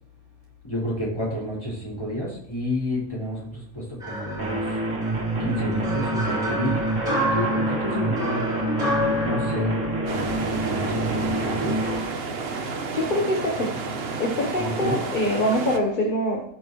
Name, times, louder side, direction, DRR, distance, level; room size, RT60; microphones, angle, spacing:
voice 1, 0.6-4.8 5.4-8.5 9.2-11.9 14.6-15.0, equal, 20° left, -7 dB, 5.0 m, -31 dB
sound 1, 4.0-11.1, equal, 30° right, 4.3 m, -30 dB
sound 2, 4.4-12.0, right 1 dB, 85° right, 2.0 m, -27 dB
sound 3, 10.1-15.8, right 4 dB, 55° right, 1.1 m, -31 dB
voice 2, 12.9-13.7 14.2-16.4, equal, 40° left, 1 dB, 1.4 m, -24 dB
16.5 x 7.1 x 3.2 m, 0.71 s
omnidirectional pair, 1.3 m